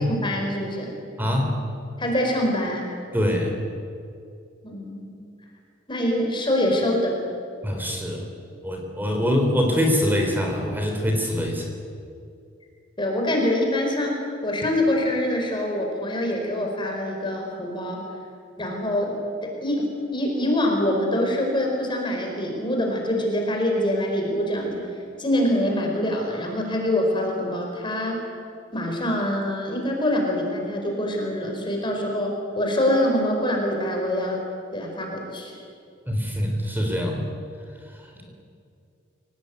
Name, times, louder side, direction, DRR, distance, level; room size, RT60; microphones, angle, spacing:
voice 1, 0.1-0.9 2.0-2.9 4.6-5.1 5.9-7.2 13.0-18.0 18.6-19.2 19.6-24.9 25.2-28.2 28.7-34.4 34.7-35.6, left 1 dB, 25° left, 1 dB, 4.8 m, -25 dB
voice 2, 1.2-1.5 3.1-3.6 7.6-8.3 8.6-11.7 36.1-37.2, equal, 10° right, 2 dB, 3.7 m, -24 dB
26.5 x 18.5 x 9.6 m, 2.4 s
head